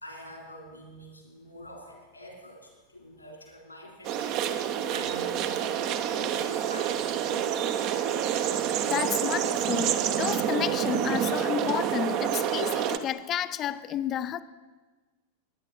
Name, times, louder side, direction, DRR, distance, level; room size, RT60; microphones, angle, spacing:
voice 1, 0.0-4.4 4.8-7.6, equal, 85° left, 3.6 m, -46 dB
sound 1, 4.0-13.0, right 9 dB, 40° right, 0.8 m, -28 dB
voice 2, 8.9-14.4, left 11 dB, 30° left, 0.4 m, -31 dB
20.5 x 9.7 x 4.2 m
figure-of-eight pair, 90°, 0 cm